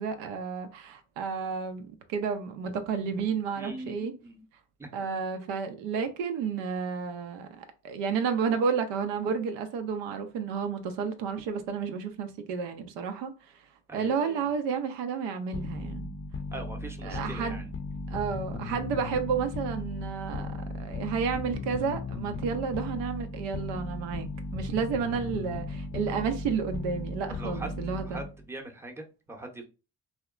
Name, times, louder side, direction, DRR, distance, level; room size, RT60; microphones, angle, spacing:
voice 1, 0.0-4.1 4.9-13.6 13.9-16.1 17.0-17.6 18.1-28.2, right 6 dB, 75° right, 0.5 m, -31 dB
voice 2, 3.6-4.4 4.8-4.9 13.9-14.4 16.5-17.7 27.3-29.6, right 2 dB, 5° right, 0.7 m, -41 dB
sound 1, 15.5-28.4, left 3 dB, 30° left, 0.5 m, -36 dB
2.7 x 2.1 x 2.3 m
hypercardioid pair, 50°, 43 cm